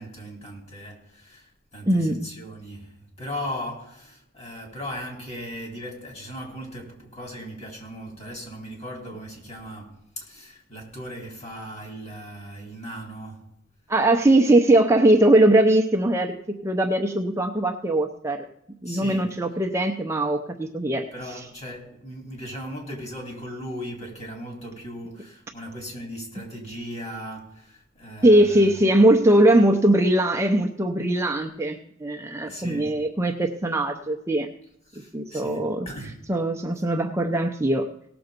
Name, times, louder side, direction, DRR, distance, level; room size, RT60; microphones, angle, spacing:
voice 1, 0.0-13.5 18.8-19.4 21.1-28.8 32.5-33.0 34.9-36.3, equal, 35° left, 3.7 m, -38 dB
voice 2, 1.9-2.3 13.9-16.3 16.6-18.5 18.8-21.0 21.3-21.4 28.2-34.5 35.1-35.9 36.3-37.9, right 1 dB, 15° right, 0.6 m, -20 dB
17.5 x 6.9 x 5.2 m
head